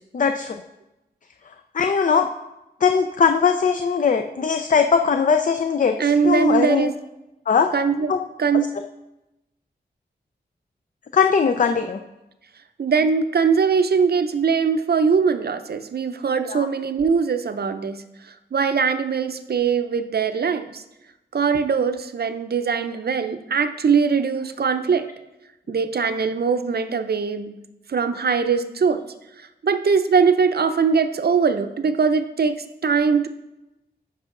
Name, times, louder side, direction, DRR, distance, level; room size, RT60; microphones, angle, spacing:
voice 1, 0.1-0.6 1.7-2.3 2.8-6.0 6.2-6.9 7.5-7.7 8.1-8.2 11.1-12.0 16.5-16.7, left 6 dB, 50° left, 7 dB, 0.4 m, -20 dB
voice 2, 6.0-6.9 7.7-8.1 8.4-8.7 12.8-18.0 18.3-20.8 21.3-25.1 25.7-27.6 27.9-29.1 29.4-33.3, right 5 dB, 65° right, 9 dB, 0.6 m, -21 dB
10.0 x 5.6 x 3.8 m, 0.96 s
wide cardioid pair, 85°, 18 cm